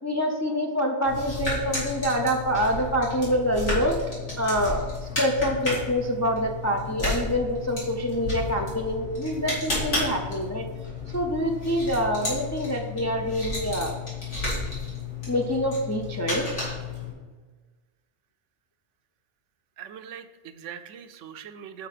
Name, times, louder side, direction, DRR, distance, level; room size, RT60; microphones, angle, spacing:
voice 1, 0.0-4.0 4.4-10.6 11.1-14.0 15.3-16.5, equal, 25° left, 2 dB, 0.3 m, -26 dB
sound 1, 1.0-17.1, left 3 dB, 75° left, 3.1 m, -32 dB
voice 2, 19.8-21.9, right 8 dB, 80° right, 9 dB, 0.9 m, -41 dB
5.9 x 4.8 x 6.5 m, 1.3 s
omnidirectional pair, 1.2 m